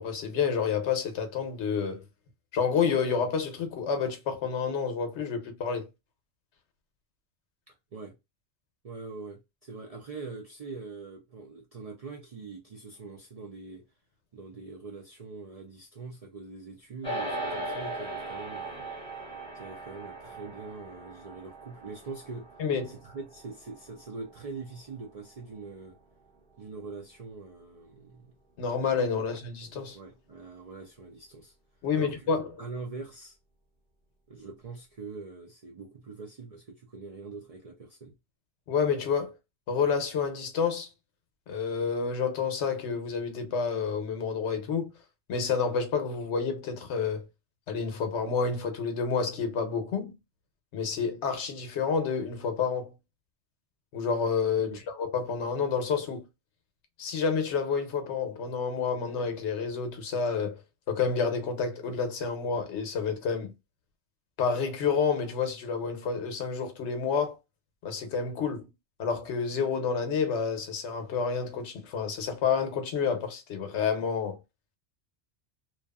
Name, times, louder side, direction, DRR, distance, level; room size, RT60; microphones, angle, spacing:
voice 1, 0.0-2.0 2.5-5.9 22.6-23.0 28.6-30.0 31.8-32.5 38.7-39.3 39.7-40.9 41.5-44.9 45.3-47.2 47.7-50.1 50.7-52.9 53.9-56.2 57.0-60.6 60.9-63.5 64.4-67.4 67.8-68.6 69.0-74.4, left 6 dB, 80° left, 1.0 m, -29 dB
voice 2, 7.7-8.1 8.8-13.8 14.3-18.8 19.5-26.0 26.6-28.3 29.1-29.2 29.9-31.5 31.9-32.3 32.6-33.4 34.3-38.1 54.6-54.8, right 4 dB, 55° right, 0.4 m, -43 dB
sound 1, 17.0-26.5, right 2 dB, 5° left, 0.7 m, -39 dB
2.7 x 2.3 x 2.2 m
omnidirectional pair, 1.2 m